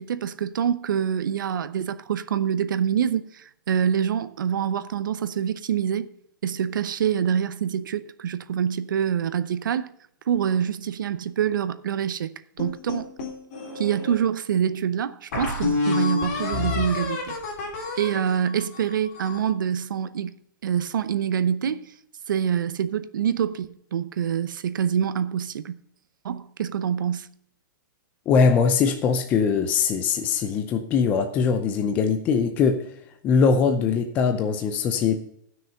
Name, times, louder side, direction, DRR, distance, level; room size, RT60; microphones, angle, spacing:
voice 1, 0.0-6.1 6.4-9.9 10.3-13.1 13.7-17.3 18.0-21.9 22.3-25.8 26.2-27.3, right 8 dB, 85° right, 0.8 m, -26 dB
sound 1, 12.6-14.1 14.7-14.8 15.3-19.5, left 4 dB, 45° left, 3.3 m, -29 dB
voice 2, 28.3-32.9 33.2-35.2, left 5 dB, 15° left, 0.6 m, -21 dB
13.5 x 6.3 x 5.6 m
hypercardioid pair, 180°, 11 cm